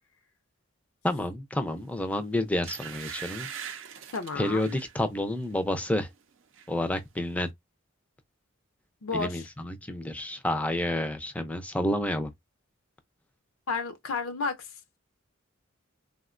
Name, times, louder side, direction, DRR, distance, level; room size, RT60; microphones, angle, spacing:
voice 1, 1.0-3.5 4.4-6.1 6.7-7.5 9.1-12.3, left 1 dB, 5° left, 0.4 m, -29 dB
sound 1, 1.9-2.1 2.6-5.0 5.4-5.6 6.0-6.7 7.0-7.1, right 9 dB, 65° right, 0.5 m, -41 dB
voice 2, 4.1-4.8 9.0-9.4 13.7-14.7, left 4 dB, 75° left, 0.6 m, -32 dB
3.5 x 2.1 x 2.4 m
head